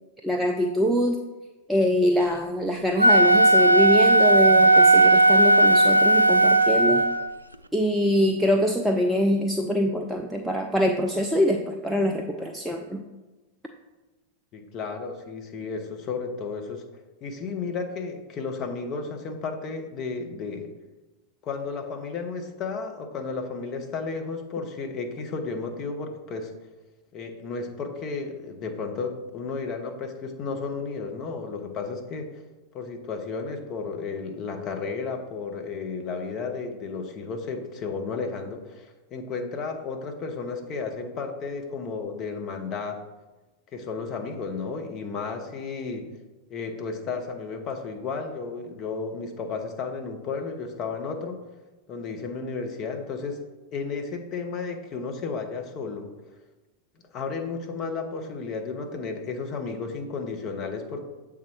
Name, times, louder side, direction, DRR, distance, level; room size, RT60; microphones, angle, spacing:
voice 1, 0.2-1.2 1.7-7.1 7.7-13.0, equal, 5° right, 2 dB, 0.4 m, -24 dB
Wind instrument woodwind instrument, 2.9-7.3, right 1 dB, 80° right, 0.3 m, -16 dB
voice 2, 14.5-16.8 17.2-20.7 21.4-26.5 27.1-32.4 32.7-43.0 43.7-46.1 46.5-51.4 51.9-53.4 53.7-56.1 57.1-61.0, left 4 dB, 35° left, 5 dB, 0.9 m, -33 dB
7.2 x 3.7 x 4.5 m, 1.2 s
figure-of-eight pair, 90°, 0 cm